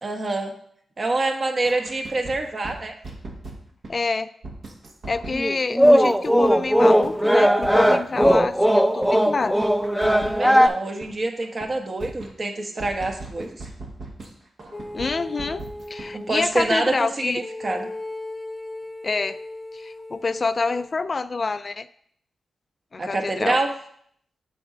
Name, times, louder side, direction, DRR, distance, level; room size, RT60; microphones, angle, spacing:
voice 1, 0.0-0.5 1.0-2.9 10.2-13.5 16.1-17.9 23.0-23.7, right 2 dB, 50° right, 3 dB, 1.2 m, -26 dB
sound 1, 1.6-3.9 4.4-5.4 5.8-6.7 7.0-7.1 7.4-8.7 9.0-11.1 11.4-11.7 12.0-14.3 14.6-16.1 16.4-16.6, right 2 dB, 65° right, 1.5 m, -39 dB
voice 2, 3.9-4.3 5.0-9.5 14.9-17.4 19.0-19.4 19.7-21.9 22.9-23.6, left 4 dB, 45° left, 13 dB, 0.3 m, -27 dB
sound 2, 5.3-10.7, equal, 5° right, 0.6 m, -18 dB
sound 3, 14.7-16.4 17.4-21.0, left 1 dB, 25° left, 0.8 m, -37 dB
6.8 x 4.2 x 5.1 m, 0.65 s
cardioid pair, 55°, 0 cm